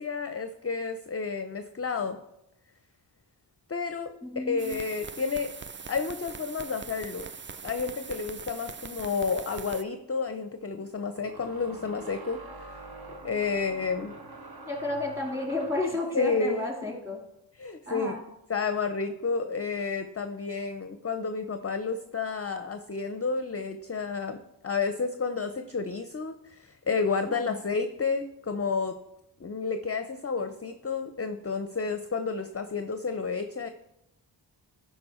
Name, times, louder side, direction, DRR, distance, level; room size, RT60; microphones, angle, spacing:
voice 1, 0.0-2.2 3.7-5.5 5.9-7.3 7.6-12.4 13.1-14.1 16.1-16.7 17.6-18.1 18.5-24.4 24.6-29.0 29.4-33.7, left 4 dB, 30° left, 8 dB, 0.5 m, -31 dB
voice 2, 4.2-4.8 14.7-17.2 17.9-18.2 27.4-27.6, left 2 dB, 5° right, -1 dB, 2.7 m, -32 dB
sound 1, 4.6-9.8, right 5 dB, 30° right, 0.4 m, -42 dB
sound 2, 11.2-16.0, right 2 dB, 50° right, 1.2 m, -45 dB
11.5 x 4.8 x 4.3 m, 0.84 s
wide cardioid pair, 45°, 46 cm